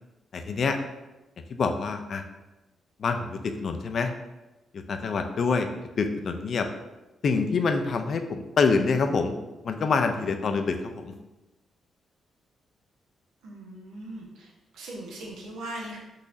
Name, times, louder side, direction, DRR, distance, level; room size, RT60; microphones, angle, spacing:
voice 1, 0.3-0.8 1.5-2.2 3.0-4.1 4.7-5.7 6.0-6.7 7.2-9.4 9.6-11.1, left 4 dB, 60° left, 7 dB, 0.4 m, -26 dB
voice 2, 13.4-16.0, right 1 dB, 85° right, -2 dB, 0.8 m, -40 dB
3.9 x 2.8 x 2.6 m, 1.0 s
cardioid pair, 65°, 0 cm